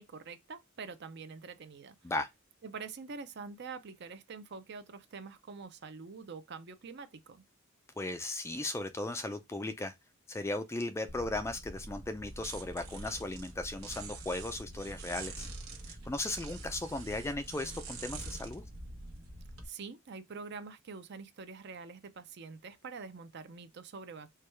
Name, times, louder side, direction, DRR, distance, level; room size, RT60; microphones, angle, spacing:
voice 1, 0.0-2.0 2.6-7.4 19.6-24.3, right 5 dB, 55° right, 0.5 m, -45 dB
voice 2, 8.0-9.9 10.3-15.5 15.9-18.6, left 2 dB, 15° left, 0.3 m, -36 dB
sound 1, 11.1-19.7, right 2 dB, 90° right, 1.1 m, -45 dB
4.6 x 2.2 x 3.2 m
head